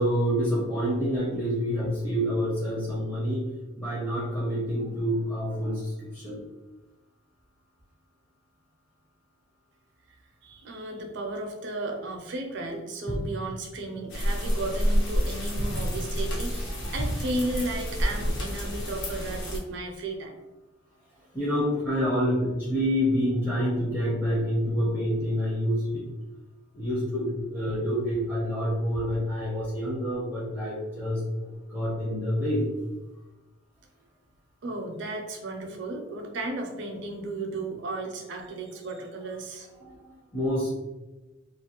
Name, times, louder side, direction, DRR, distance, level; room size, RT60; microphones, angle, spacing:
voice 1, 0.0-3.5 3.8-6.4 13.1-13.2 16.8-16.9 21.3-26.0 26.7-32.7 39.8-40.7, equal, 10° left, -7 dB, 0.5 m, -27 dB
voice 2, 10.4-20.4 34.6-39.7, right 2 dB, 60° right, 3 dB, 0.4 m, -34 dB
sound 1, 14.1-19.6, equal, 60° left, 0.7 m, -29 dB
2.4 x 2.1 x 2.8 m, 1.1 s
head